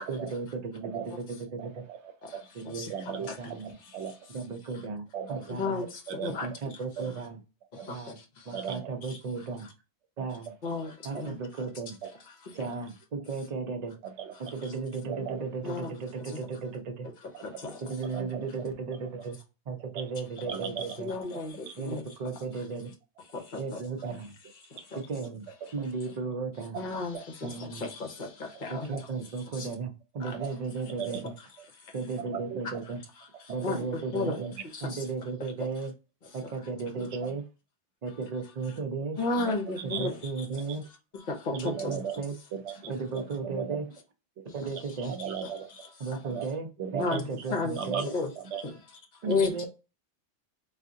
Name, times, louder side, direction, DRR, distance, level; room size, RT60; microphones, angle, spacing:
voice 1, 0.1-1.8 2.5-2.9 3.2-3.8 4.3-5.8 6.4-7.4 7.9-8.2 8.5-9.7 10.2-10.5 11.0-12.0 12.5-14.0 14.4-17.1 17.8-19.4 19.7-21.1 21.8-22.9 23.6-24.3 24.9-25.5 25.7-26.8 27.4-27.8 28.7-31.3 31.9-33.0 33.5-34.5 34.8-35.9 36.3-37.4 38.0-39.2 39.8-40.8 41.5-42.4 42.8-43.9 44.5-45.2 46.0-48.1 49.2-49.7, right 4 dB, 45° right, 0.6 m, -35 dB
voice 2, 1.6-2.0 2.3-2.4 2.9-3.3 3.6-4.1 5.1-5.7 6.1-6.3 7.0-7.1 7.8-7.9 8.5-8.9 10.2-10.3 11.1-11.2 12.0-12.1 14.0-14.3 15.1-15.4 17.3-17.4 18.1-18.4 20.5-20.9 21.3-21.7 24.0-24.1 25.6-25.7 27.1-27.6 28.5-28.6 28.9-29.0 30.4-30.5 31.0-31.2 32.2-32.6 34.2-34.5 37.0-37.3 39.4-40.1 41.7-42.2 42.5-42.7 43.1-43.8 44.4-44.5 45.1-45.9 46.2-46.5 46.8-47.2 47.8-48.6 49.4-49.7, right 7 dB, 75° right, 0.9 m, -37 dB
voice 3, 5.5-6.5 7.7-8.6 9.1-9.2 10.6-11.3 15.6-15.9 16.3-16.4 17.4-17.8 21.0-22.0 23.3-23.8 24.6-25.0 26.7-28.9 29.5-29.7 30.2-30.4 31.8-31.9 33.4-33.8 34.1-34.4 34.7-35.0 36.4-36.5 39.2-40.5 41.3-41.9 42.8-42.9 44.5-44.6 46.1-46.2 47.0-47.2 47.5-47.8 48.0-48.3 48.6-48.8 49.3-49.7, left 3 dB, 50° left, 0.9 m, -33 dB
3.5 x 2.5 x 2.6 m
omnidirectional pair, 1.2 m